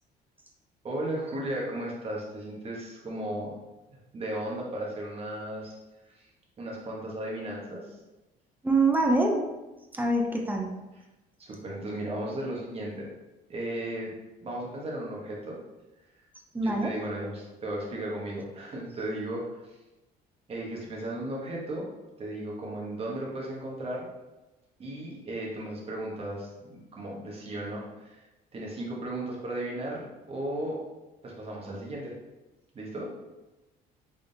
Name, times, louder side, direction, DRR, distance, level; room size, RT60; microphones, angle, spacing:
voice 1, 0.8-3.5 3.9-5.7 6.1-6.3 6.6-8.0 11.4-13.1 13.5-14.1 14.4-15.6 16.6-19.8 20.5-21.9 22.2-24.1 24.8-28.2 28.5-30.8 31.2-32.1 32.7-33.1, right 1 dB, 35° right, -3 dB, 1.1 m, -35 dB
voice 2, 8.6-9.5 9.9-10.8 16.5-16.9, right 2 dB, 10° right, 1 dB, 0.6 m, -25 dB
3.6 x 3.4 x 2.7 m, 1.1 s
cardioid pair, 110°, 17 cm